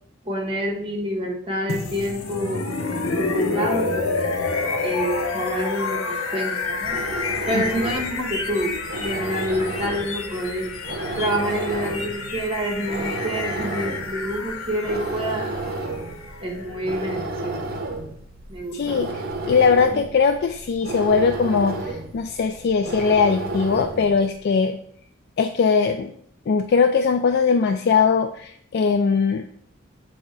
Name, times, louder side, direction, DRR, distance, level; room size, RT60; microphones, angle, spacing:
voice 1, 0.2-4.3 4.8-7.0 7.5-10.7 11.2-15.8 16.4-17.6 18.5-19.1, equal, 25° right, 1 dB, 1.3 m, -28 dB
sound 1, 1.7-17.6, left 3 dB, 85° left, 0.8 m, -29 dB
sound 2, 6.6-24.2, right 2 dB, 50° right, 0.8 m, -32 dB
voice 2, 18.7-19.1 19.5-24.8 25.4-26.1 26.5-29.4, left 5 dB, 50° left, 6 dB, 0.3 m, -20 dB
7.2 x 2.8 x 4.6 m, 0.64 s
head